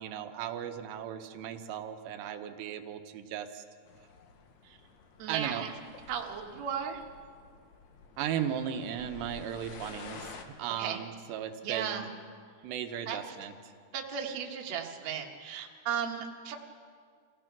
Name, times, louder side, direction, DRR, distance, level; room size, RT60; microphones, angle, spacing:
voice 1, 0.0-3.6 5.3-5.6 8.2-12.1 12.6-13.5, right 9 dB, 90° right, 6 dB, 3.2 m, -36 dB
sound 1, 3.9-10.5, left 5 dB, 65° left, 1.9 m, -51 dB
voice 2, 5.2-5.7 6.1-7.0 10.8-11.0 11.6-12.1 13.1-13.2 13.9-16.6, right 8 dB, 55° right, 2 dB, 2.1 m, -35 dB
26.5 x 17.0 x 6.0 m, 2.1 s
omnidirectional pair, 4.8 m